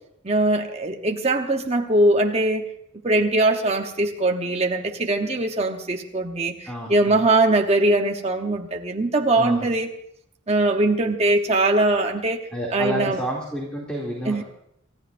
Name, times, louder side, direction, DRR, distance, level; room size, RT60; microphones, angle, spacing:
voice 1, 0.2-2.6 3.0-9.9 10.5-12.4 12.7-13.2 14.3-14.4, right 2 dB, 30° right, 2 dB, 0.9 m, -21 dB
voice 2, 6.6-7.2 9.4-9.7 12.5-14.4, equal, 5° left, -3 dB, 2.5 m, -30 dB
28.0 x 14.5 x 2.6 m, 0.76 s
head